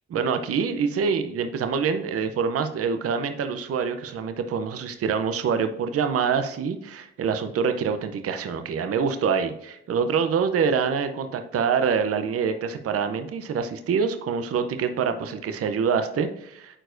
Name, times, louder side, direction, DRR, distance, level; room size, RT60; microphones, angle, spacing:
voice 1, 0.1-16.8, right 6 dB, 50° right, 8 dB, 0.7 m, -25 dB
8.8 x 4.6 x 2.6 m, 0.77 s
cardioid pair, 90°, 30 cm